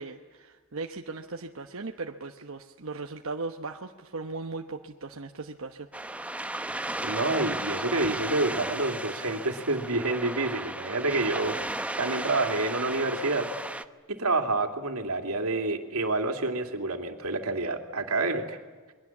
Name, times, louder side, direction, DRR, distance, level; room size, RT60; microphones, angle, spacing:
voice 1, 0.0-5.9, right 3 dB, 65° right, 4 dB, 1.1 m, -38 dB
sound 1, 5.9-13.9, right 1 dB, 5° right, 0.7 m, -34 dB
voice 2, 7.0-11.6 12.0-13.5 14.1-18.6, right 2 dB, 90° right, 5 dB, 2.7 m, -28 dB
28.0 x 22.5 x 7.3 m, 1.4 s
head